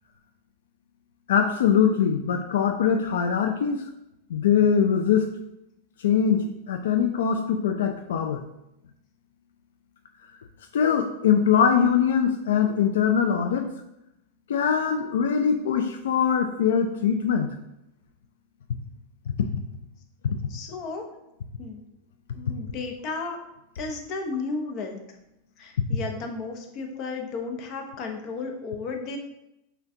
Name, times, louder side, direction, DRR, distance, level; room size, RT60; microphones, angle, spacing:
voice 1, 1.3-3.8 4.3-5.3 6.0-8.4 10.7-13.7 14.5-17.5 19.4-19.6 20.2-20.4, left 7 dB, 90° left, 5 dB, 0.3 m, -22 dB
voice 2, 20.5-21.1 21.6-21.8 22.3-23.4 23.8-25.0 25.6-29.2, left 4 dB, 40° left, 3 dB, 0.7 m, -33 dB
5.8 x 2.2 x 2.7 m, 0.85 s
supercardioid pair, 135°, 0 cm